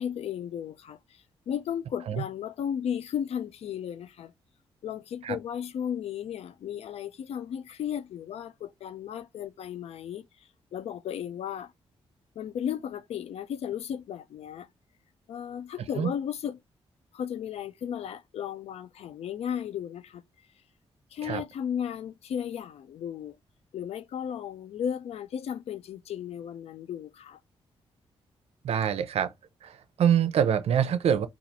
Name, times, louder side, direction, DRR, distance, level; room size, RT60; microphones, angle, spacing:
voice 1, 0.0-4.3 4.8-11.7 12.4-14.7 15.3-16.6 17.1-20.2 21.1-23.4 23.7-27.4, left 9 dB, 75° left, 0.4 m, -35 dB
voice 2, 28.6-29.3 29.6-31.3, right 8 dB, 70° right, 0.6 m, -25 dB
4.0 x 2.4 x 2.8 m
cardioid pair, 90°, 11 cm